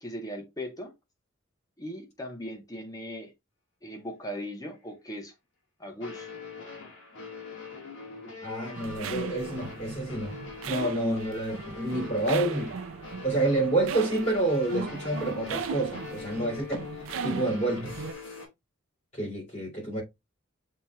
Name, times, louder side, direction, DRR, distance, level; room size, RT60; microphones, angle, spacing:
voice 1, 0.0-0.9 1.8-3.3 3.8-5.3 5.8-6.4, equal, 20° left, 1.0 m, -38 dB
sound 1, 4.6-4.7 6.0-18.5, left 4 dB, 65° left, 2.0 m, -43 dB
voice 2, 8.4-10.3 10.7-12.8 13.2-16.8 17.2-17.9 19.1-20.0, right 2 dB, 35° left, 2.5 m, -28 dB
sound 2, 8.8-18.1, right 5 dB, 85° right, 0.4 m, -38 dB
7.3 x 3.0 x 2.2 m
head